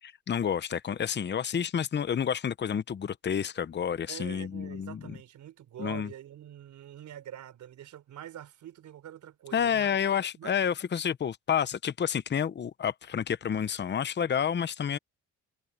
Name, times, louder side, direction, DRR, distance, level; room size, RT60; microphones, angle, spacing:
voice 1, 0.0-5.2 5.8-6.1 9.5-15.0, left 8 dB, 35° left, 0.8 m, -29 dB
voice 2, 4.1-10.0 10.4-10.5, right 11 dB, 70° right, 3.9 m, -45 dB
cardioid pair, 90°, 30 cm